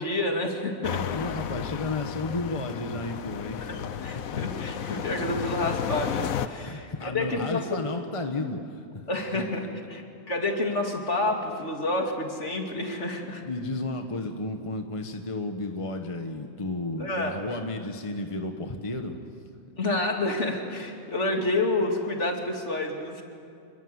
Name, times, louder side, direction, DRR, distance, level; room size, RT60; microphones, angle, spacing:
voice 1, 0.0-1.2 3.6-3.7 4.0-7.8 9.1-13.4 17.0-17.4 19.8-23.2, left 2 dB, 55° left, 2 dB, 2.9 m, -29 dB
sound 1, 0.8-6.5, left 9 dB, 75° left, 1.2 m, -33 dB
voice 2, 1.1-3.7 4.1-4.9 6.6-9.1 9.3-9.7 13.4-19.2, left 2 dB, 25° left, 5 dB, 1.2 m, -33 dB
27.5 x 21.5 x 8.1 m, 2.4 s
omnidirectional pair, 1.5 m